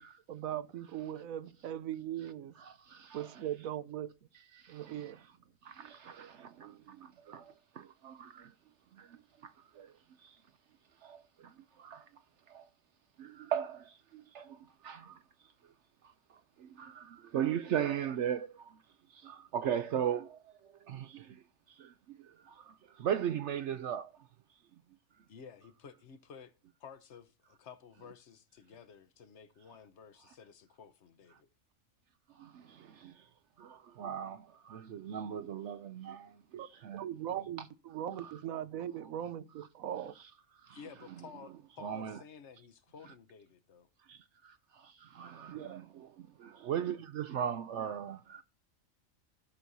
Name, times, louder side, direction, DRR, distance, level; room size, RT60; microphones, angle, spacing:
voice 1, 0.3-2.6 3.1-4.1 4.7-5.3 36.5-36.7 36.9-40.1 45.5-45.8, right 11 dB, 90° right, 1.1 m, -39 dB
voice 2, 2.6-3.4 4.3-5.3 5.6-8.5 8.9-10.4 11.0-12.7 13.2-15.7 16.0-18.8 19.1-24.3 32.3-33.3 33.6-37.0 37.3-37.4 38.2-38.4 39.0-39.1 39.6-39.7 40.2-40.8 41.2-41.3 41.8-42.2 43.1-43.2 44.0-48.4, right 9 dB, 65° right, 0.8 m, -39 dB
voice 3, 25.3-26.5 26.8-31.5 40.7-43.9, left 6 dB, 60° left, 1.1 m, -53 dB
16.0 x 6.1 x 2.7 m
omnidirectional pair, 1.4 m